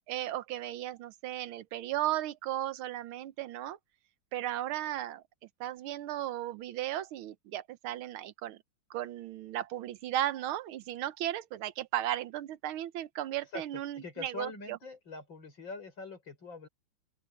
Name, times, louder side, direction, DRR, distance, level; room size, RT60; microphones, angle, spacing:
voice 1, 0.1-3.8 4.3-5.2 5.6-8.6 8.9-14.8, right 13 dB, 85° right, 1.6 m, -35 dB
voice 2, 13.9-16.7, left 3 dB, 65° left, 6.4 m, -43 dB
open air
omnidirectional pair, 2.3 m